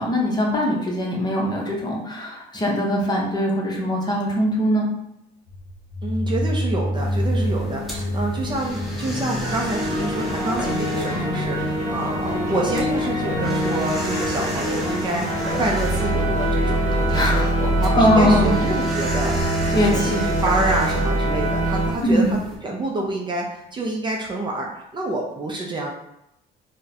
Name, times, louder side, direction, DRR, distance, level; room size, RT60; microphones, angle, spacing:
voice 1, 0.0-4.9 17.1-17.5 17.9-18.5 19.7-20.2 22.0-22.3, equal, 25° left, -2 dB, 0.8 m, -21 dB
sound 1, 5.5-17.0, equal, 60° left, 0.7 m, -30 dB
voice 2, 6.0-25.9, right 2 dB, 25° right, -1 dB, 0.5 m, -27 dB
sound 2, 6.9-22.6, left 1 dB, ahead, 1.1 m, -33 dB
sound 3, 9.4-21.9, right 1 dB, 50° right, 1.0 m, -24 dB
3.6 x 2.1 x 2.7 m, 0.82 s
cardioid pair, 110°, 17 cm